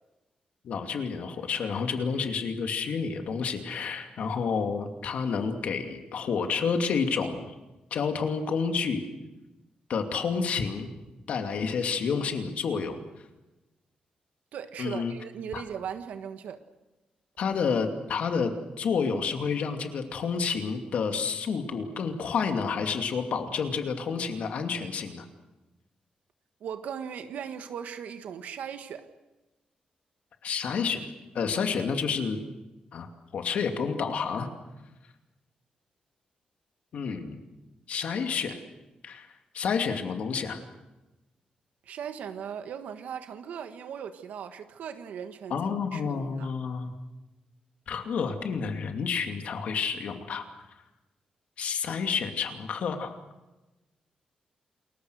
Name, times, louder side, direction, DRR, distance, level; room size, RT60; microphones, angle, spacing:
voice 1, 0.6-7.5 7.9-9.0 9.9-10.9 11.3-13.0 14.8-15.1 15.5-15.6 17.4-25.3 30.4-32.4 32.9-34.5 36.9-37.4 37.9-38.6 39.0-39.3 39.5-40.6 45.5-46.9 47.9-50.4 51.6-53.2, left 5 dB, 60° left, 5 dB, 2.6 m, -29 dB
voice 2, 14.5-16.6 26.6-29.1 41.8-46.5, right 8 dB, 80° right, 8 dB, 1.4 m, -38 dB
29.0 x 22.0 x 6.5 m, 1.1 s
wide cardioid pair, 175°, 3 cm